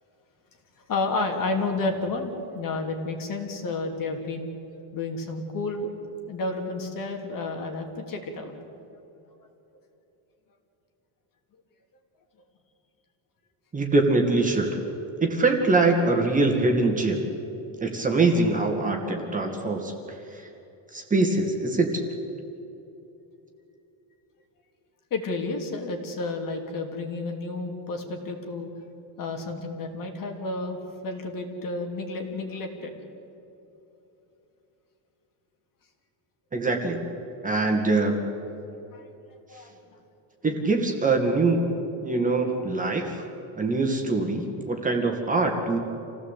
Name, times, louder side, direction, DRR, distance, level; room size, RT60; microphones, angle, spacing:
voice 1, 0.9-4.5 4.9-5.9 6.3-8.6 25.1-28.7 29.2-30.8 31.0-32.9 38.9-39.0 39.5-39.7, left 3 dB, 45° left, 3 dB, 3.1 m, -31 dB
voice 2, 13.7-14.8 15.2-17.2 17.8-20.5 20.9-22.0 36.5-37.0 37.4-38.2 40.4-41.6 42.0-43.3 43.6-45.8, right 3 dB, 15° right, 2 dB, 2.3 m, -23 dB
27.5 x 17.0 x 8.5 m, 3.0 s
cardioid pair, 160°, 46 cm